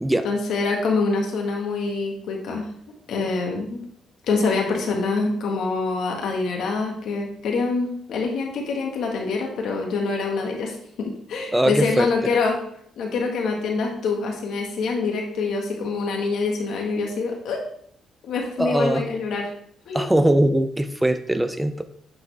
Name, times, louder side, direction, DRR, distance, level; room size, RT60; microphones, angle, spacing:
voice 1, 0.2-2.7 3.1-3.8 4.2-12.6 13.0-17.6 18.2-19.5 19.9-20.1, left 4 dB, 75° left, 1 dB, 1.5 m, -25 dB
voice 2, 11.5-12.1 18.6-19.1 19.9-21.8, right 1 dB, 10° right, 10 dB, 0.4 m, -21 dB
8.7 x 4.1 x 3.4 m, 0.66 s
cardioid pair, 90°, 0 cm